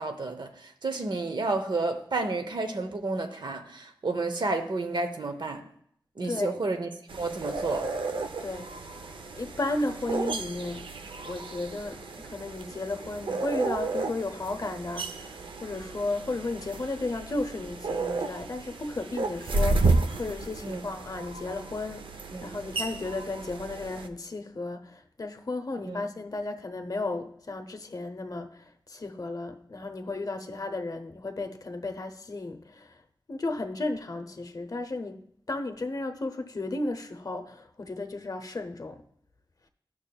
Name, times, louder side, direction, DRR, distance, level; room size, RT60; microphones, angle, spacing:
voice 1, 0.0-5.6 6.2-7.9 20.6-20.8 22.3-22.6 25.8-26.1, right 3 dB, 65° right, 0.9 m, -31 dB
voice 2, 6.2-6.7 8.4-8.7 9.4-10.9 11.2-22.1 22.4-33.0 33.3-39.0, left 2 dB, 45° left, 0.7 m, -34 dB
sound 1, 7.1-24.1, right 3 dB, 85° right, 0.5 m, -32 dB
13.0 x 6.1 x 2.3 m
wide cardioid pair, 75°, 8 cm